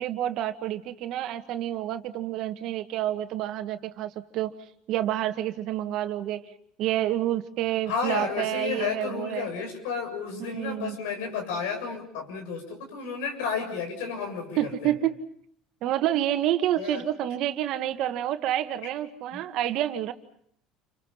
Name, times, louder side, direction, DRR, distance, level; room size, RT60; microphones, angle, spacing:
voice 1, 0.0-4.5 4.9-6.4 6.8-9.5 10.4-11.0 14.6-15.2 15.8-20.1, right 12 dB, 60° right, 8 dB, 1.8 m, -28 dB
voice 2, 7.9-14.9 16.8-17.0 19.3-19.4, left 5 dB, 85° left, 3 dB, 7.3 m, -32 dB
29.5 x 25.5 x 5.8 m, 0.65 s
supercardioid pair, 105°, 0 cm